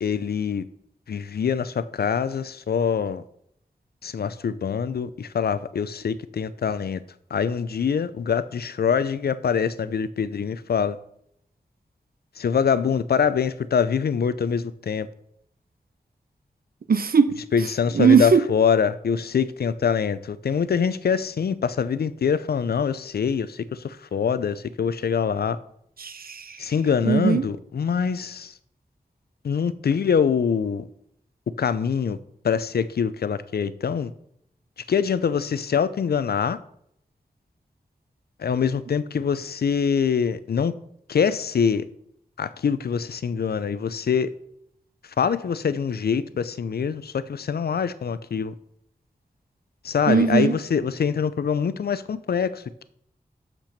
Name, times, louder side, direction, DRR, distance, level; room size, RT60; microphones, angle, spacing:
voice 1, 0.0-0.6 1.1-3.2 4.0-7.0 7.3-11.0 12.4-15.1 17.5-25.6 26.6-28.6 29.4-30.9 31.6-32.2 32.4-34.1 34.9-36.6 38.4-40.7 41.1-41.8 42.4-44.3 45.0-48.5 49.8-52.6, left 7 dB, 80° left, 0.5 m, -24 dB
voice 2, 16.9-17.4 17.9-18.4 26.0-26.7 27.1-27.4 50.1-50.5, right 6 dB, 70° right, 0.7 m, -19 dB
6.8 x 5.9 x 5.8 m
cardioid pair, 50°, 16 cm